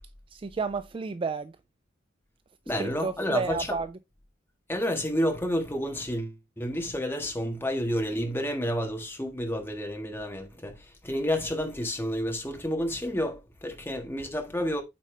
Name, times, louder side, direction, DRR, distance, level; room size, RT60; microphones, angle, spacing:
voice 1, 0.3-1.5 2.8-4.0, right 4 dB, 25° right, 0.3 m, -31 dB
voice 2, 2.7-3.6 4.7-14.8, equal, 10° left, 1.5 m, -30 dB
8.4 x 4.3 x 3.2 m
head